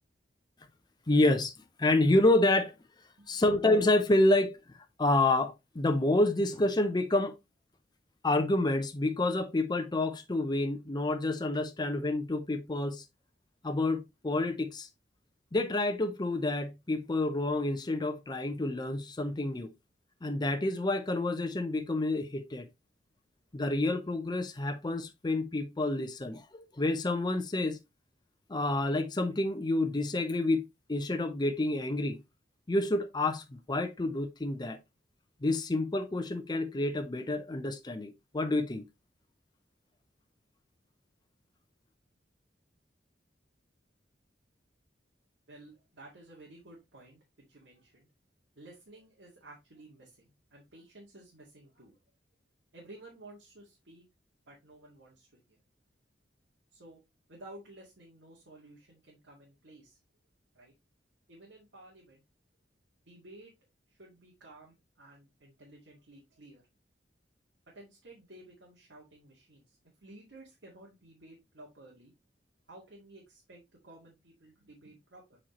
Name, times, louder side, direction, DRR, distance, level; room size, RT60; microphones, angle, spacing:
voice 1, 1.1-1.5 1.8-2.7 3.3-4.6 5.0-7.3 8.2-13.0 13.6-14.9 15.5-19.7 20.2-22.7 23.5-27.8 28.5-30.6 30.9-32.2 32.7-34.8 35.4-38.8, left 2 dB, 25° left, 0.6 m, -28 dB
voice 2, 45.5-47.2 47.5-48.1 48.6-52.0 52.7-54.0 54.5-55.6 56.7-57.0 57.3-60.0 60.5-60.7 61.3-62.2 63.1-63.5 63.9-66.6 67.7-72.1 72.7-75.4, right 2 dB, 80° right, 2.0 m, -54 dB
7.4 x 4.3 x 3.0 m
head